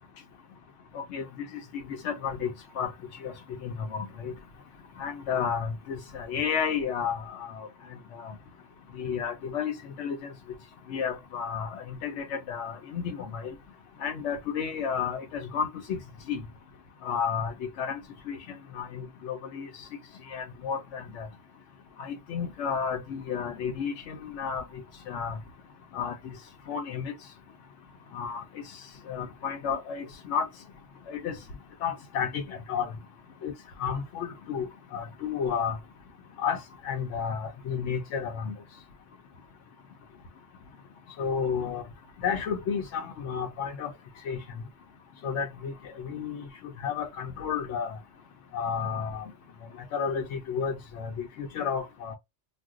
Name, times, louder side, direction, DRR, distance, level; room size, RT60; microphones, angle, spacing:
voice 1, 1.9-2.5 2.8-2.9 3.2-3.3 3.6-4.3 5.0-7.7 8.2-8.3 9.0-10.2 10.9-13.5 14.0-16.0 16.3-16.4 17.0-18.0 18.3-18.4 18.7-19.7 20.3-21.3 22.0-24.6 25.1-25.4 25.9-26.1 26.7-27.1 28.1-28.4 29.1-30.5 31.1-31.3 31.8-32.9 33.4-33.5 33.8-35.8 36.4-38.5 41.2-41.8 42.2-43.9 44.3-44.4 45.2-46.5 46.8-47.9 48.5-49.2 49.9-51.1 51.4-52.2, left 7 dB, 75° left, 0.9 m, -32 dB
2.5 x 2.1 x 3.6 m
omnidirectional pair, 1.2 m